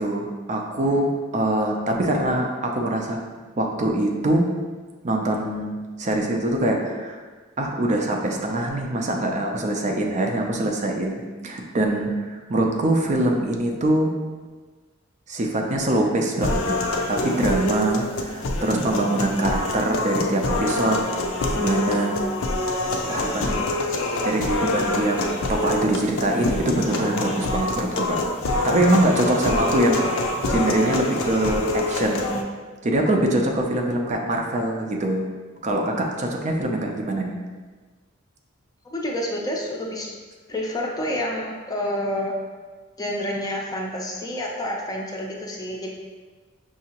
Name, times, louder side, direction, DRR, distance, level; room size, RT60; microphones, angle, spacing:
voice 1, 0.0-3.2 3.6-4.5 5.0-7.2 7.6-14.1 15.3-21.0 21.5-22.2 23.1-23.7 24.2-25.2 25.5-28.2 28.6-30.2 30.5-32.4 32.8-35.3 35.6-37.3, right 1 dB, 35° right, 1 dB, 0.4 m, -23 dB
sound 1, 16.4-32.4, left 2 dB, 80° left, 0.5 m, -26 dB
voice 2, 38.8-40.1 40.5-42.4 43.0-45.9, left 1 dB, 20° left, -2 dB, 0.5 m, -28 dB
5.7 x 2.7 x 2.9 m, 1.4 s
head